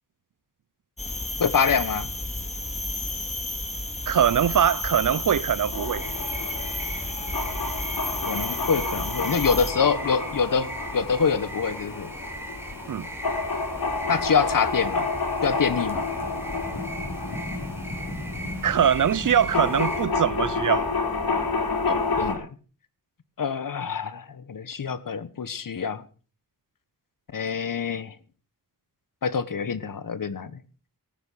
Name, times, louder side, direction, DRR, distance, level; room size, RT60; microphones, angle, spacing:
sound 1, 1.0-9.7, left 1 dB, 20° left, 2.3 m, -32 dB
voice 1, 1.4-2.1 8.2-12.1 14.1-15.1 15.4-16.0 21.9-22.5 23.4-26.0 27.3-28.1 29.2-30.5, left 6 dB, 65° left, 1.3 m, -25 dB
voice 2, 4.1-6.0 12.9-13.1 18.6-20.9, right 8 dB, 60° right, 0.6 m, -22 dB
sound 2, 5.7-22.3, left 3 dB, 85° left, 4.4 m, -30 dB
sound 3, 6.0-20.1, right 1 dB, 5° right, 4.0 m, -40 dB
18.0 x 9.2 x 6.3 m
wide cardioid pair, 115°, 35 cm